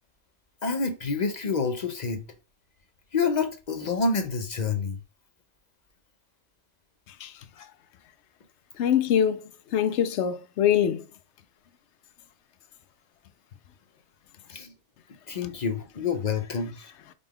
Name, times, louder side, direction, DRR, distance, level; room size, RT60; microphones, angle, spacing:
voice 1, 0.6-2.2 3.1-5.0 14.5-14.7 15.3-16.9, left 4 dB, 50° left, 0.5 m, -28 dB
voice 2, 8.8-9.4 9.7-11.0, left 9 dB, 75° left, 0.9 m, -23 dB
5.0 x 2.3 x 3.5 m
omnidirectional pair, 1.2 m